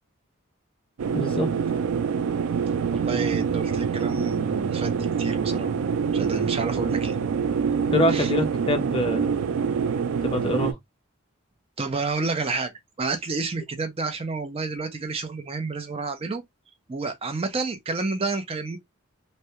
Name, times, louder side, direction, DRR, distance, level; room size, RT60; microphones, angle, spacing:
sound 1, 1.0-10.7, right 6 dB, 90° right, 0.4 m, -25 dB
voice 1, 1.1-1.5 7.9-9.3 10.2-10.8, left 1 dB, 25° left, 0.6 m, -25 dB
voice 2, 2.9-5.7 6.1-7.1 8.1-8.3 11.8-12.7 13.0-16.4 16.9-18.8, right 3 dB, 30° right, 0.5 m, -29 dB
2.3 x 2.1 x 2.7 m
head